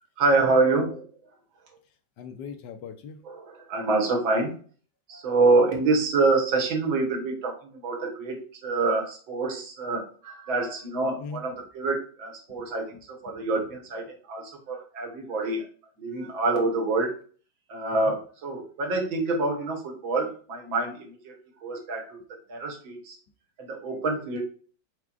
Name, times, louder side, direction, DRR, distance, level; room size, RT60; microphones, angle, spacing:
voice 1, 0.2-1.0 3.3-4.6 5.1-15.7 16.0-17.1 17.7-21.3 21.6-22.2 22.5-23.2 23.6-24.4, right 3 dB, 90° right, 1 dB, 2.0 m, -26 dB
voice 2, 2.2-3.2 11.2-11.4 12.6-12.7 13.3-13.5 17.9-18.1, left 5 dB, 70° left, 7 dB, 1.2 m, -40 dB
4.8 x 4.5 x 2.4 m, 0.42 s
omnidirectional pair, 2.1 m